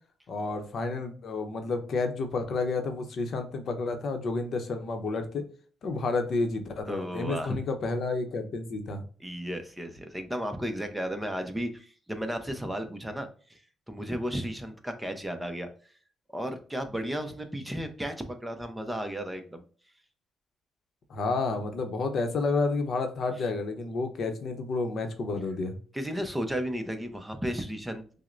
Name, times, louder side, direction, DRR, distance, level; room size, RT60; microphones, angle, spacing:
voice 1, 0.3-5.4 5.8-9.0 21.1-25.8, left 3 dB, 60° left, 6 dB, 0.8 m, -30 dB
voice 2, 6.9-7.6 9.2-13.6 13.9-15.7 16.3-19.6 25.9-28.0, equal, 10° right, 7 dB, 0.7 m, -34 dB
6.0 x 2.1 x 2.5 m, 0.43 s
cardioid pair, 90°, 0 cm